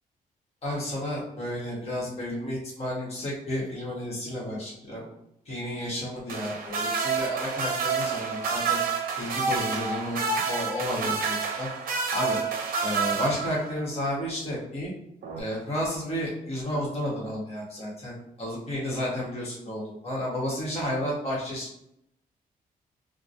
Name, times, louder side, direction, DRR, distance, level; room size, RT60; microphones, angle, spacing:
voice 1, 0.6-5.0 5.5-8.8 9.2-11.7 12.1-12.4 12.8-14.9 15.4-21.8, equal, 40° left, -5 dB, 1.2 m, -32 dB
sound 1, 6.3-13.9 15.2-15.4, right 5 dB, 65° right, 0.5 m, -29 dB
2.9 x 2.2 x 2.6 m, 0.75 s
cardioid pair, 130°, 16 cm